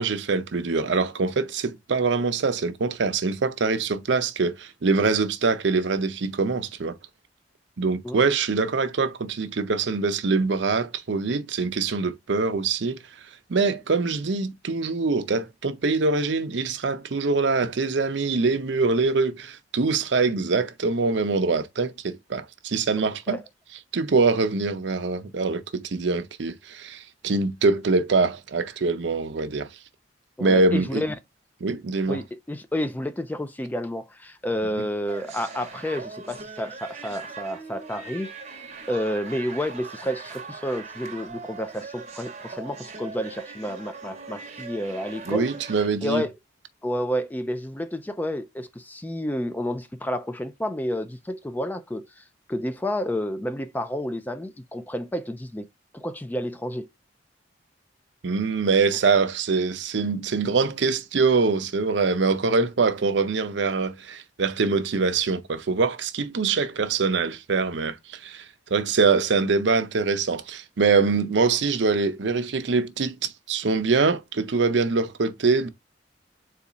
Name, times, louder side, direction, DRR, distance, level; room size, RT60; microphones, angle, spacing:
voice 1, 0.0-7.0 7.8-13.0 13.5-23.4 23.9-29.7 30.4-31.0 31.6-32.2 45.3-46.2 58.2-68.4 68.7-75.7, right 4 dB, 70° right, 0.6 m, -24 dB
voice 2, 30.4-31.1 32.1-45.5 46.0-46.3 46.8-55.7 55.9-56.9, equal, 10° left, 0.3 m, -30 dB
sound 1, 35.1-45.9, right 4 dB, 35° right, 1.0 m, -40 dB
4.1 x 2.3 x 3.9 m
head